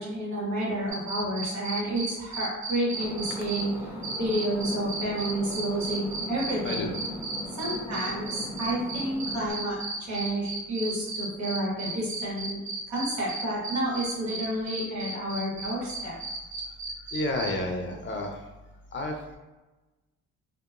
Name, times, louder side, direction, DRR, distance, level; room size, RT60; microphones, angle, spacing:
voice 1, 0.0-3.9 4.2-6.9 7.6-12.6 12.9-16.1, right 1 dB, 65° right, -5 dB, 1.2 m, -30 dB
sound 1, 0.9-3.6 4.0-17.5, right 4 dB, 25° right, 1.5 m, -34 dB
sound 2, 2.9-9.5, left 1 dB, 5° right, 0.7 m, -38 dB
voice 2, 17.1-18.4 18.9-19.4, left 1 dB, 40° left, 2 dB, 0.5 m, -31 dB
2.8 x 2.0 x 2.4 m, 1.1 s
cardioid pair, 90°, 30 cm